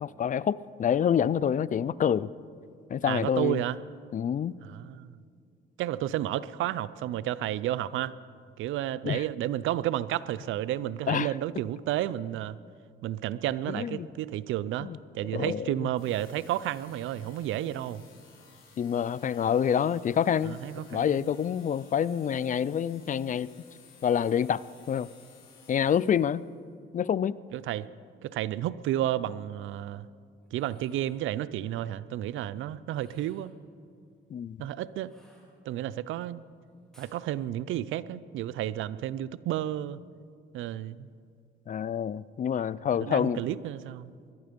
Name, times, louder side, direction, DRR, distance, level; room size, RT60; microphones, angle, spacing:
voice 1, 0.0-2.3 2.9-3.6 4.1-4.6 9.0-9.2 11.1-11.3 13.7-14.1 14.8-15.0 15.3-15.9 18.8-20.6 20.9-23.5 24.0-24.6 24.9-25.1 25.7-26.4 26.9-27.4 34.3-34.7 41.7-43.4, left 8 dB, 40° left, 19 dB, 0.4 m, -27 dB
voice 2, 3.0-3.8 4.6-5.1 5.8-8.1 8.6-12.6 13.0-14.9 15.1-18.0 20.5-21.3 27.5-27.9 28.2-30.1 30.5-33.5 34.6-35.2 35.7-36.4 37.0-40.0 40.5-41.1 43.0-44.1, right 13 dB, 85° right, 17 dB, 0.5 m, -31 dB
sound 1, 15.9-26.5, left 5 dB, 85° left, 4.4 m, -56 dB
sound 2, 30.4-31.2 32.9-33.6 35.0-35.9 36.9-37.2, equal, 5° left, 4.7 m, -62 dB
21.5 x 12.0 x 5.2 m, 2.3 s
cardioid pair, 90°, 20 cm